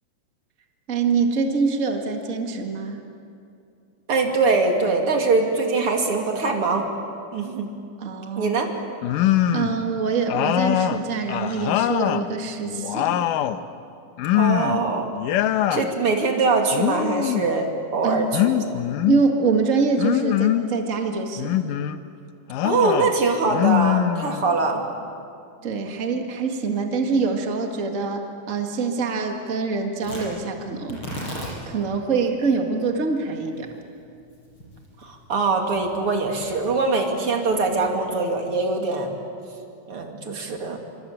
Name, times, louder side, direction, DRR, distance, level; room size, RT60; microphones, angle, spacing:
voice 1, 0.9-3.0 8.0-8.6 9.5-13.3 18.0-18.3 19.1-21.6 25.6-31.3 31.7-33.7, right 4 dB, 70° right, 3 dB, 0.7 m, -25 dB
voice 2, 4.1-6.9 7.3-7.7 8.4-8.7 14.3-15.1 15.7-18.8 22.6-24.8 35.0-39.1 39.9-40.8, right 3 dB, 40° right, 2 dB, 3.0 m, -23 dB
sound 1, 9.0-9.8 10.3-12.3 12.7-13.6 14.2-14.9 15.1-15.9 16.7-17.5 18.3-19.2 20.0-20.7 21.4-22.0 22.5-23.1 23.5-24.6, left 12 dB, 75° left, 2.0 m, -23 dB
Tearing, 30.0-38.4, equal, 30° left, 7.2 m, -40 dB
26.5 x 25.0 x 8.8 m, 2.4 s
omnidirectional pair, 4.7 m